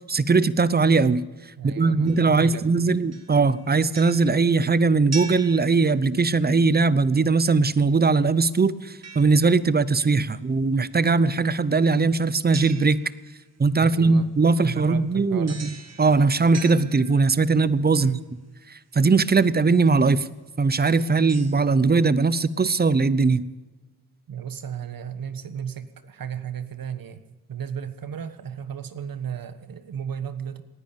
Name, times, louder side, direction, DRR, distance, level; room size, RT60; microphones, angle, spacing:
voice 1, 0.1-1.3 1.6-13.0 13.6-18.1 18.7-20.3 20.6-23.4, right 4 dB, 25° right, 18 dB, 0.7 m, -20 dB
voice 2, 1.6-3.0 13.8-14.3 14.6-15.7 18.0-18.3 24.3-27.2 27.5-30.6, right 8 dB, 65° right, 11 dB, 1.4 m, -34 dB
sound 1, 2.0-2.7 3.1-6.4 9.0-9.9 12.5-13.5 15.5-17.6 19.1-19.2 19.9-20.0 20.7-21.6, right 5 dB, 45° right, 2.0 m, -42 dB
18.5 x 10.5 x 7.0 m, 1.2 s
cardioid pair, 75°, 37 cm